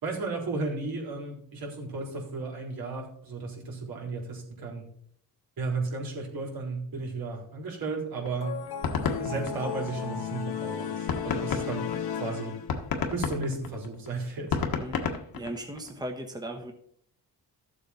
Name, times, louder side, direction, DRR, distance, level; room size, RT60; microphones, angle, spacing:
voice 1, 0.0-4.8 5.6-8.6 9.2-11.8 12.1-12.6 13.1-14.6, right 3 dB, 70° right, -1 dB, 4.1 m, -34 dB
sound 1, 8.3-10.3 10.7-10.8 11.1-16.0, left 5 dB, 65° left, 1.6 m, -31 dB
sound 2, 8.4-13.1, left 8 dB, 85° left, 1.4 m, -35 dB
voice 2, 15.3-16.7, right 1 dB, 10° right, 4 dB, 1.3 m, -37 dB
13.5 x 7.4 x 4.3 m, 0.65 s
cardioid pair, 110°, 37 cm